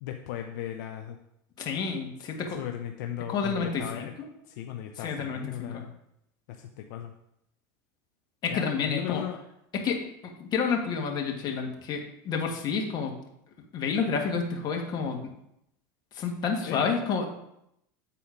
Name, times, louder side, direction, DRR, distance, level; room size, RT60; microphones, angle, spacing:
voice 1, 0.0-1.2 2.6-4.1 4.6-5.9 6.6-7.1 8.5-9.4 16.6-16.9, left 11 dB, 75° left, 4 dB, 0.6 m, -36 dB
voice 2, 1.6-2.6 3.3-4.3 5.0-5.8 8.4-9.2 9.7-13.1 13.7-15.2 16.1-17.3, left 5 dB, 45° left, 2 dB, 1.7 m, -30 dB
8.4 x 4.2 x 5.1 m, 0.78 s
supercardioid pair, 105°, 10 cm